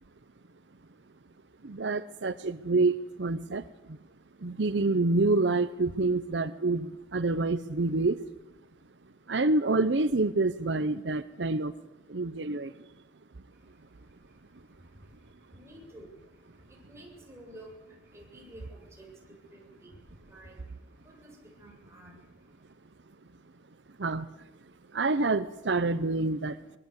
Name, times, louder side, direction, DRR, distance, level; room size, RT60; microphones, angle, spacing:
voice 1, 1.6-3.6 4.4-8.2 9.3-11.7 12.1-12.7 24.0-24.3 24.9-26.8, right 3 dB, 80° right, 13 dB, 0.8 m, -27 dB
voice 2, 13.5-22.7, right 1 dB, 15° right, -1 dB, 7.6 m, -53 dB
25.0 x 20.5 x 8.2 m, 0.96 s
head